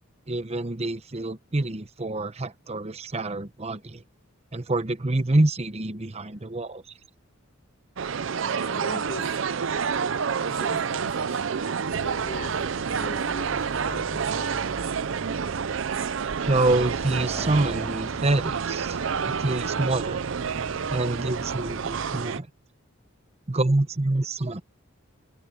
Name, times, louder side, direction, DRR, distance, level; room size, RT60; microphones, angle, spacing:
voice 1, 0.3-4.0 4.5-6.8 16.5-19.0 19.3-20.2 20.9-22.5 23.5-24.6, right 2 dB, 30° right, 0.9 m, -26 dB
sound 1, 8.0-22.4, right 6 dB, 65° right, 0.5 m, -29 dB
voice 2, 8.6-9.4 10.4-11.4 11.9-14.7, left 2 dB, 50° left, 1.2 m, -40 dB
Accelerating revving vroom, 11.9-22.3, equal, 5° left, 3.8 m, -42 dB
head